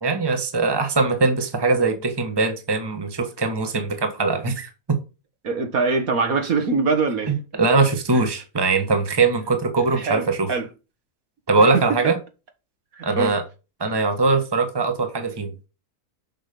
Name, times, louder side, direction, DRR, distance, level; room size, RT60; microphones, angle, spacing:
voice 1, 0.0-4.7 7.3-10.5 11.5-12.2 13.0-13.4 13.8-15.7, right 3 dB, 15° right, 1.4 m, -21 dB
voice 2, 5.4-7.3 8.1-8.3 9.9-10.7 11.6-11.8 12.9-13.4, right 4 dB, 65° right, 1.9 m, -23 dB
7.7 x 6.4 x 5.3 m
omnidirectional pair, 1.7 m